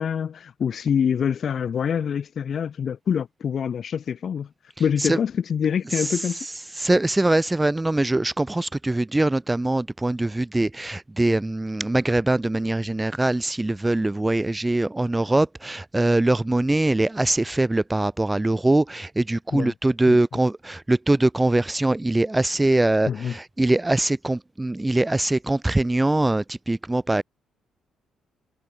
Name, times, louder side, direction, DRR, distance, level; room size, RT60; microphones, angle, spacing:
voice 1, 0.0-4.5 4.8-6.5 19.5-19.7 20.1-20.2 23.1-23.4, left 7 dB, 55° left, 0.8 m, -25 dB
voice 2, 5.9-27.2, right 2 dB, 15° right, 0.8 m, -22 dB
cardioid pair, 90°, 0 cm